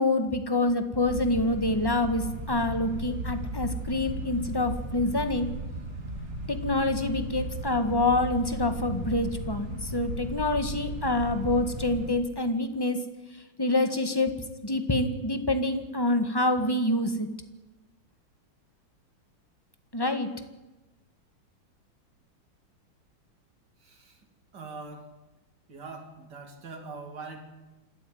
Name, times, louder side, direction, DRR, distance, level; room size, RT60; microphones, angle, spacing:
voice 1, 0.0-5.5 6.5-13.0 13.6-14.3 14.6-17.3 19.9-20.3, left 2 dB, 10° left, 8 dB, 1.5 m, -26 dB
sound 1, 1.0-12.1, right 1 dB, 30° right, 3.3 m, -35 dB
voice 2, 23.8-24.2 24.5-25.1 25.7-27.4, right 3 dB, 50° right, 2 dB, 3.6 m, -42 dB
27.0 x 13.0 x 9.4 m, 1.1 s
omnidirectional pair, 2.3 m